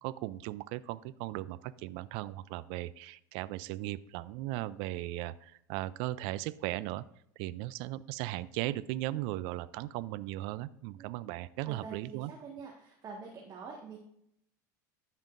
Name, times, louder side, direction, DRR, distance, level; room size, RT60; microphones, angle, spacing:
voice 1, 0.0-7.0 7.4-12.3, right 16 dB, 60° right, 17 dB, 0.4 m, -37 dB
voice 2, 11.6-14.0, right 5 dB, 40° right, 0 dB, 1.6 m, -46 dB
13.5 x 5.6 x 2.6 m, 0.72 s
hypercardioid pair, 85°, 10 cm